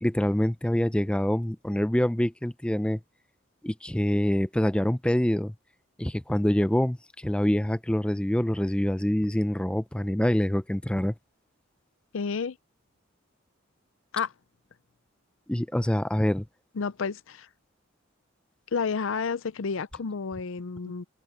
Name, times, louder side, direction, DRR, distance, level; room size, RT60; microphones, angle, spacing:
voice 1, 0.0-3.0 3.6-5.5 6.0-11.1 15.5-16.5, equal, 5° left, 0.4 m, -25 dB
voice 2, 12.1-12.6 14.1-14.3 16.7-17.5 18.7-21.0, left 5 dB, 70° left, 0.5 m, -30 dB
head